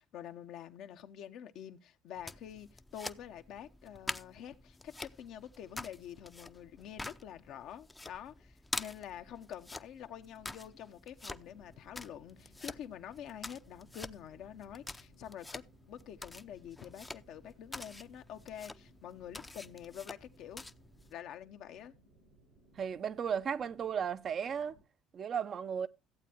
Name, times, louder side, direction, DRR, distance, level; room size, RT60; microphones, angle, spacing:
voice 1, 0.0-15.6 15.9-20.7 21.1-21.9, left 9 dB, 65° left, 0.9 m, -47 dB
sound 1, 2.1-21.1, left 2 dB, 15° left, 0.6 m, -47 dB
sound 2, 11.3-24.8, right 2 dB, 90° right, 4.5 m, -65 dB
voice 2, 22.8-24.8 25.1-25.9, right 7 dB, 50° right, 0.7 m, -35 dB
14.5 x 8.4 x 2.9 m
hypercardioid pair, 65°, 0 cm